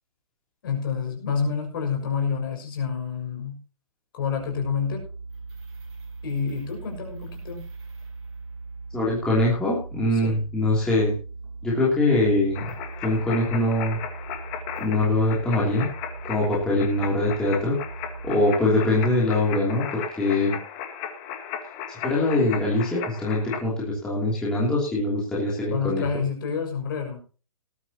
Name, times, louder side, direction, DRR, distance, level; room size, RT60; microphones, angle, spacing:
voice 1, 0.6-3.6 4.1-5.0 6.2-7.6 10.1-10.4 25.7-27.2, left 6 dB, 35° left, 2 dB, 6.3 m, -28 dB
sound 1, 4.3-18.3, right 3 dB, 45° right, 7.5 m, -39 dB
voice 2, 8.9-11.1 11.6-12.7 13.0-14.0 14.8-15.9 16.2-17.8 18.2-20.5 21.9-26.0, left 2 dB, 5° left, -7 dB, 3.0 m, -23 dB
sound 2, 12.5-23.6, left 8 dB, 20° left, 1.7 m, -36 dB
19.5 x 11.5 x 2.9 m, 0.36 s
hypercardioid pair, 175°, 18 cm